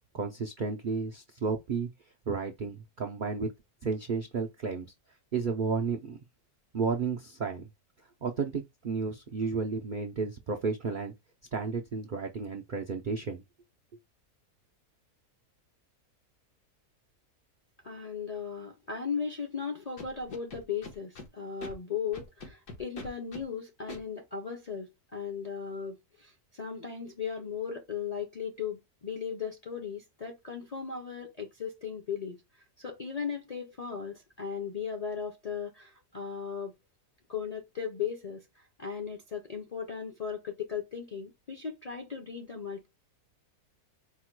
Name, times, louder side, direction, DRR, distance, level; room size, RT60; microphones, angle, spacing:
voice 1, 0.1-1.9 2.3-3.5 3.8-4.9 5.3-6.2 6.7-7.7 8.2-11.1 11.5-13.4, right 4 dB, 90° right, 0.4 m, -32 dB
voice 2, 17.8-32.4 32.8-36.7 37.3-38.4 38.8-42.9, left 7 dB, 50° left, 0.4 m, -37 dB
Scratching (performance technique), 20.0-21.3 21.6-21.7 22.1-23.4 23.9-24.0, left 2 dB, 90° left, 1.8 m, -43 dB
4.6 x 2.2 x 4.5 m
omnidirectional pair, 1.6 m